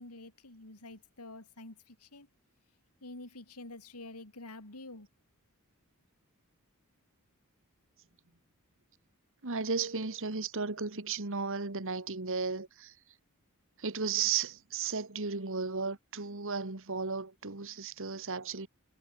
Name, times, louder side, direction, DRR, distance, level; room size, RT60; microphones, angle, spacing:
voice 1, 0.0-2.3 3.0-5.1, left 2 dB, 90° left, 3.8 m, -48 dB
voice 2, 9.4-12.9 13.8-18.7, right 5 dB, 60° right, 1.8 m, -34 dB
head